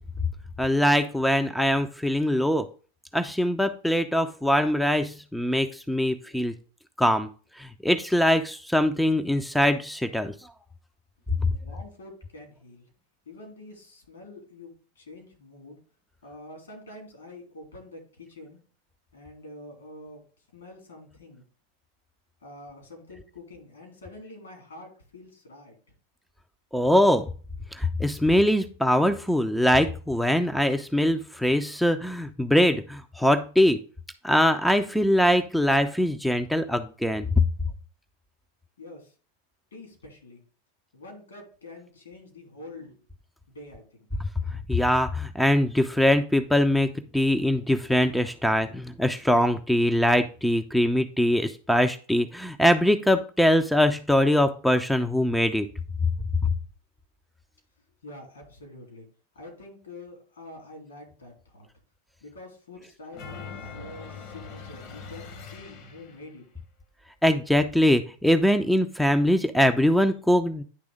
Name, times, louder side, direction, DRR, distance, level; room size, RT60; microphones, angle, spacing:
voice 1, 0.6-2.7 3.1-6.5 7.0-7.3 7.6-10.3 11.4-11.5 26.7-27.3 27.7-33.8 34.2-37.3 44.7-46.9 47.1-55.7 67.2-70.6, equal, ahead, 8 dB, 0.5 m, -22 dB
voice 2, 11.5-12.9 13.3-14.7 15.0-15.8 16.2-18.6 19.1-20.2 20.5-21.4 22.4-25.8 38.8-39.1 39.7-40.4 40.9-43.0 43.5-44.0 58.0-59.1 59.4-61.7 62.2-66.4, left 2 dB, 70° left, 2 dB, 3.3 m, -46 dB
sound 1, 63.1-66.3, left 5 dB, 45° left, 1.2 m, -42 dB
9.9 x 3.4 x 4.9 m, 0.38 s
figure-of-eight pair, 90°, 0 cm